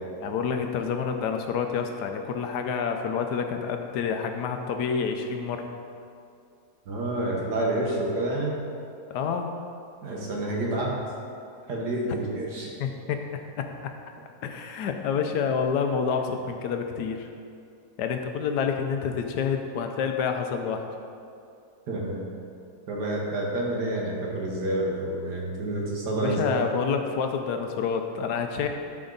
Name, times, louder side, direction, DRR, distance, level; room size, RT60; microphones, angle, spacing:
voice 1, 0.2-5.7 9.1-9.5 12.1-12.2 12.8-13.2 13.6-13.7 14.4-17.3 18.0-20.9 26.2-28.7, left 6 dB, 85° left, 5 dB, 1.3 m, -28 dB
voice 2, 6.9-8.5 10.0-11.0 11.7-12.7 21.9-22.3 22.9-26.5, right 1 dB, 85° right, -2 dB, 1.9 m, -28 dB
12.5 x 4.4 x 3.9 m, 2.5 s
omnidirectional pair, 1.7 m